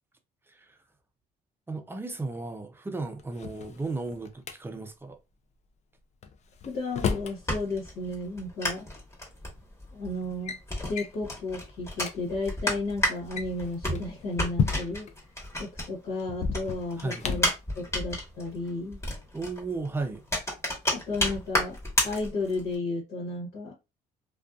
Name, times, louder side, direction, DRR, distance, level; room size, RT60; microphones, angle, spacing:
voice 1, 0.5-0.8 1.7-5.2 17.0-17.3 19.3-20.2, right 3 dB, 15° right, 0.5 m, -35 dB
Drawer open or close, 3.2-4.6 6.2-7.4 8.7-8.8 9.6-9.9 10.2-10.6 11.0-11.2 11.7-11.8 12.0-12.2 13.2-15.1 16.3-17.6, left 6 dB, 40° left, 0.4 m, -32 dB
voice 2, 6.6-8.9 9.9-10.6 10.8-15.1 15.6-17.5 17.8-19.0 20.9-21.8 22.0-23.7, left 2 dB, 80° left, 1.2 m, -33 dB
sound 1, 7.2-16.2 16.5-22.8, left 1 dB, 15° left, 1.2 m, -32 dB
2.5 x 2.3 x 2.4 m
cardioid pair, 110°, 17 cm